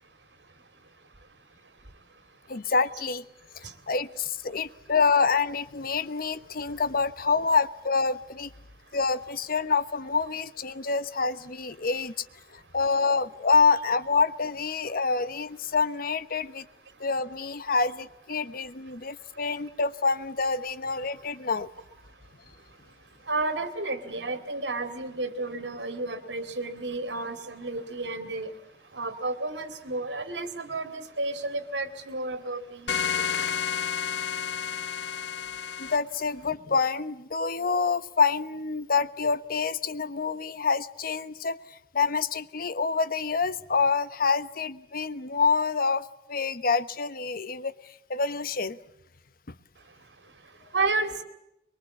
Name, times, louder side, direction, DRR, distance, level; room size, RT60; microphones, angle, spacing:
voice 1, 2.5-3.2 3.6-8.5 8.9-12.3 12.5-16.7 17.0-21.7 35.8-48.8 49.5-49.6, left 4 dB, 55° left, 15 dB, 1.0 m, -27 dB
voice 2, 22.2-22.8 23.2-28.6 28.9-35.0 35.5-35.7 49.8-51.2, right 2 dB, 90° right, 9 dB, 2.4 m, -33 dB
sound 1, 32.9-36.0, left 7 dB, 80° left, 0.9 m, -30 dB
23.5 x 23.0 x 8.4 m, 0.85 s
head